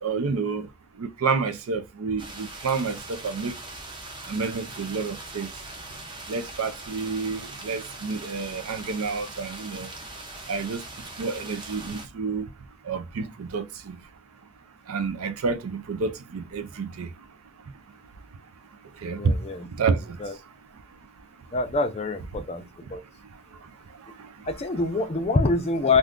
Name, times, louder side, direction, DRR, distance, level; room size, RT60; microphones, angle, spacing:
voice 1, 0.0-0.7 1.0-3.6 4.3-5.5 6.3-9.9 10.5-10.8 11.2-12.5 12.9-14.0 14.9-17.1 19.0-19.4 19.8-20.2, right 4 dB, 75° right, 0.5 m, -29 dB
sound 1, 2.2-12.1, right 2 dB, 20° right, 0.6 m, -40 dB
voice 2, 19.2-19.7 20.2-20.3 21.5-22.6 22.9-23.0 24.5-26.0, left 3 dB, 25° left, 0.4 m, -25 dB
2.5 x 2.4 x 3.5 m
head